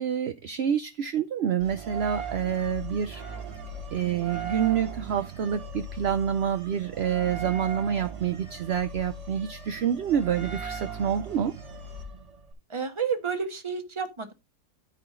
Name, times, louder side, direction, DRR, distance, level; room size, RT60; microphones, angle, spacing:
voice 1, 0.0-3.2 3.9-11.5, right 8 dB, 55° right, 0.7 m, -27 dB
sound 1, 1.6-12.5, right 4 dB, 90° right, 3.5 m, -38 dB
voice 2, 12.7-14.3, right 6 dB, 20° right, 1.2 m, -30 dB
13.5 x 4.9 x 3.8 m
omnidirectional pair, 1.7 m